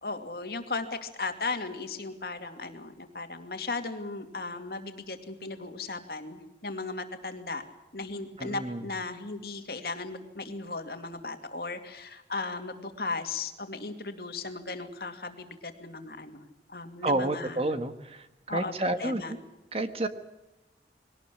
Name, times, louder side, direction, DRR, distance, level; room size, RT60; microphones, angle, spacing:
voice 1, 0.0-7.6 7.9-17.6 18.5-19.4, left 3 dB, 60° left, 6 dB, 2.5 m, -36 dB
voice 2, 8.4-8.8 17.0-18.3 18.5-19.4 19.7-20.1, right 2 dB, 35° right, 9 dB, 1.5 m, -30 dB
22.0 x 18.5 x 8.5 m, 0.99 s
head